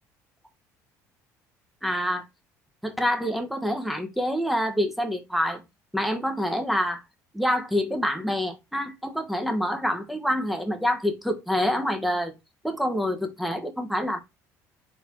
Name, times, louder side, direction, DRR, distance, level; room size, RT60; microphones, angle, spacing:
voice 1, 1.8-2.2 2.8-5.6 5.9-7.0 7.3-12.3 12.6-14.2, equal, ahead, 1.0 m, -26 dB
3.9 x 3.4 x 3.0 m
supercardioid pair, 80°, 8 cm